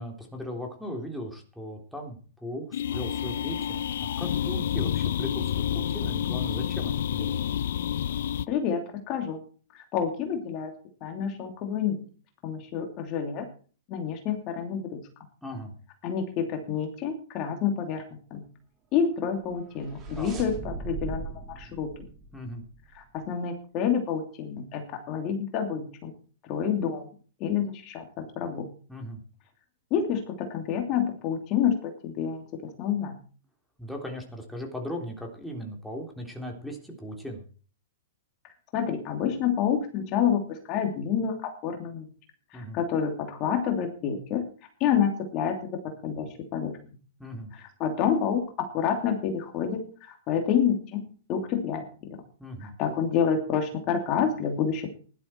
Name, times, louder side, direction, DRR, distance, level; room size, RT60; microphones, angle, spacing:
voice 1, 0.0-7.4 15.4-15.7 20.2-20.4 22.3-22.6 28.9-29.2 33.8-37.4 42.5-42.8 47.2-47.5 52.4-52.7, equal, ahead, 0 dB, 3.5 m, -38 dB
sound 1, 2.7-8.5, left 10 dB, 65° left, 0.7 m, -29 dB
voice 2, 8.5-8.8 9.1-9.4 9.7-10.7 11.0-12.0 12.4-13.5 13.9-15.0 16.0-18.0 18.3-18.4 18.9-21.9 22.9-26.1 26.4-27.1 27.4-28.7 29.9-32.4 32.8-33.1 38.7-42.1 42.5-44.4 44.8-45.6 45.8-46.8 47.6-51.0 51.3-51.8 52.6-54.9, left 7 dB, 40° left, 4 dB, 2.8 m, -28 dB
sound 2, 19.4-23.0, right 4 dB, 25° right, 4.5 m, -39 dB
16.0 x 11.5 x 4.5 m, 0.40 s
hypercardioid pair, 120°, 0 cm